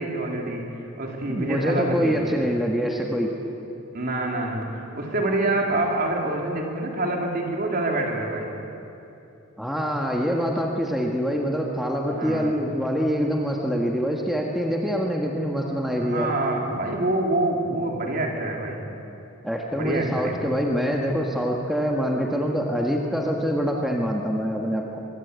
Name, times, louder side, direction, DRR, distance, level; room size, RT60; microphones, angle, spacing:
voice 1, 0.0-2.3 3.9-8.5 12.1-12.5 16.0-18.8 19.7-20.6, right 2 dB, 45° right, 0 dB, 3.8 m, -26 dB
voice 2, 1.3-3.3 9.6-16.3 19.4-25.0, equal, ahead, -1 dB, 1.7 m, -25 dB
23.5 x 23.5 x 8.4 m, 2.9 s
head